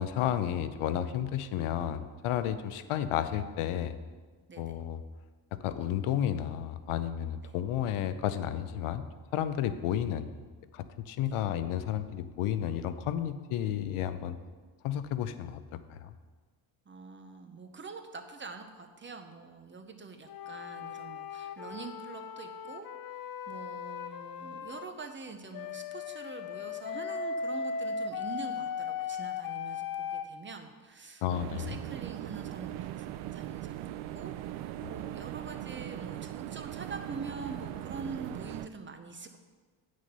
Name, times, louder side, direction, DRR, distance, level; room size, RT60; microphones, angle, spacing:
voice 1, 0.0-4.0 4.6-5.0 5.6-9.0 9.3-10.3 10.7-14.4 14.8-15.6 15.9-16.1 31.2-31.8 34.8-34.9, left 10 dB, 85° left, 12 dB, 0.7 m, -32 dB
voice 2, 16.9-22.9 23.2-39.4, right 4 dB, 25° right, 6 dB, 0.7 m, -45 dB
sound 1, 20.3-24.9 25.5-30.3, left 6 dB, 45° left, 0.5 m, -37 dB
sound 2, 31.3-38.7, right 13 dB, 80° right, 0.5 m, -40 dB
8.3 x 6.4 x 5.4 m, 1.4 s
cardioid pair, 130°, 49 cm